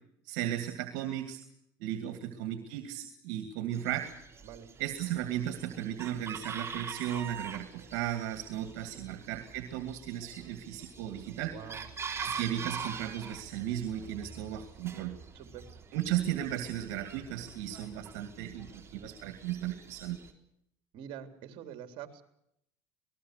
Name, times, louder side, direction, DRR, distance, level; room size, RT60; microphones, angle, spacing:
voice 1, 0.2-1.4 1.8-4.1 4.8-11.5 12.2-15.2 15.9-20.2, right 11 dB, 80° right, 8 dB, 2.3 m, -35 dB
Chicken rooster, 3.7-20.3, right 5 dB, 25° right, 3.7 m, -45 dB
voice 2, 4.4-4.7 11.5-11.8 15.3-15.7 20.9-22.2, right 10 dB, 60° right, 7 dB, 3.6 m, -46 dB
27.5 x 19.5 x 6.7 m, 0.76 s
supercardioid pair, 105°, 10 cm